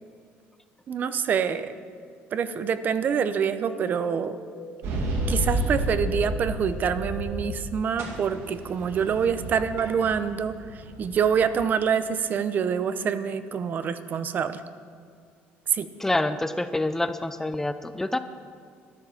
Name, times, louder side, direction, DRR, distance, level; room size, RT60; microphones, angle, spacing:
voice 1, 0.9-1.7 2.3-4.4 5.3-10.5 11.0-14.6 15.7-15.9, right 7 dB, 45° right, 12 dB, 0.7 m, -26 dB
sound 1, 2.4-7.6, left 1 dB, 75° left, 2.3 m, -43 dB
sound 2, 4.8-7.7 8.0-11.5, right 1 dB, 75° right, 2.5 m, -31 dB
voice 2, 16.0-18.2, left 2 dB, 10° left, 11 dB, 0.5 m, -27 dB
13.0 x 10.5 x 7.1 m, 2.1 s
cardioid pair, 125°, 4 cm